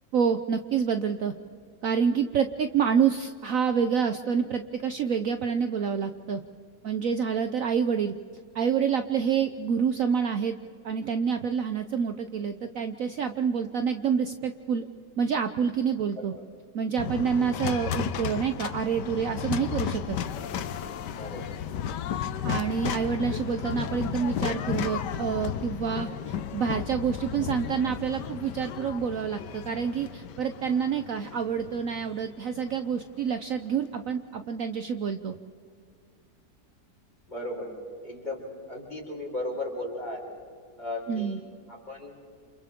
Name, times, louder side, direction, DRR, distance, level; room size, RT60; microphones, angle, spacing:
voice 1, 0.1-1.3 1.8-6.4 6.8-8.1 8.5-10.6 10.8-14.9 15.2-16.3 16.7-20.2 22.4-35.3 41.1-41.4, right 7 dB, 60° right, 8 dB, 1.0 m, -27 dB
sound 1, 17.0-33.2, left 8 dB, 80° left, 1.4 m, -34 dB
voice 2, 21.1-21.5 37.3-37.7 38.0-38.4 38.7-40.2 40.8-41.4 41.9-42.2, left 2 dB, 25° left, -2 dB, 5.1 m, -35 dB
29.0 x 28.0 x 3.7 m, 2.2 s
omnidirectional pair, 1.8 m